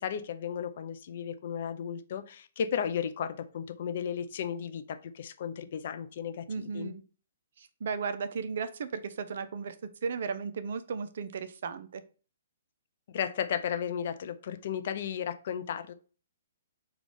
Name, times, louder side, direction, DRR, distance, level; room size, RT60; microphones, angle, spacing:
voice 1, 0.0-6.9 13.1-15.9, left 8 dB, 50° left, 9 dB, 0.4 m, -34 dB
voice 2, 6.5-7.0 7.6-9.7 10.0-12.0, right 5 dB, 60° right, 12 dB, 0.4 m, -35 dB
3.7 x 2.3 x 3.4 m, 0.36 s
figure-of-eight pair, 125°, 0 cm